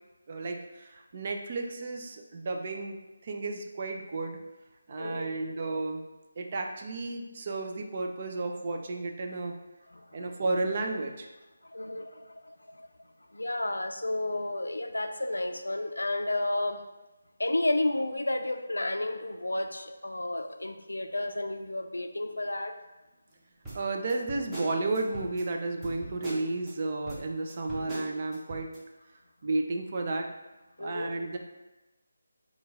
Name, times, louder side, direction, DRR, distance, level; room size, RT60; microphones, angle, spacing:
voice 1, 0.3-4.4 4.9-6.1 6.4-9.6 10.1-11.3 23.7-28.8 29.4-30.3 30.8-31.4, right 2 dB, 40° right, 3 dB, 0.4 m, -32 dB
voice 2, 5.0-5.3 9.9-10.3 11.6-12.9 13.3-16.8 17.4-22.8 30.8-31.1, left 1 dB, 80° left, 6 dB, 0.4 m, -32 dB
sound 1, 23.6-26.7 27.1-28.8, right 1 dB, 10° right, 1.0 m, -42 dB
3.7 x 2.3 x 4.0 m, 1.1 s
figure-of-eight pair, 155°, 0 cm